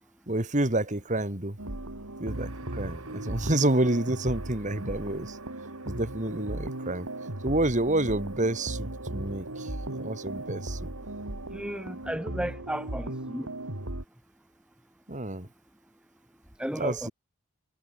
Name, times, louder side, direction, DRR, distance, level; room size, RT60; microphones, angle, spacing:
voice 1, 0.3-1.6 2.2-5.4 5.8-7.1 7.4-10.8 15.1-15.5 16.8-17.1, right 1 dB, 35° right, 2.4 m, -29 dB
sound 1, 1.6-14.0, right 1 dB, 90° right, 3.2 m, -37 dB
voice 2, 11.5-13.5 16.6-17.1, equal, 5° right, 1.1 m, -34 dB
head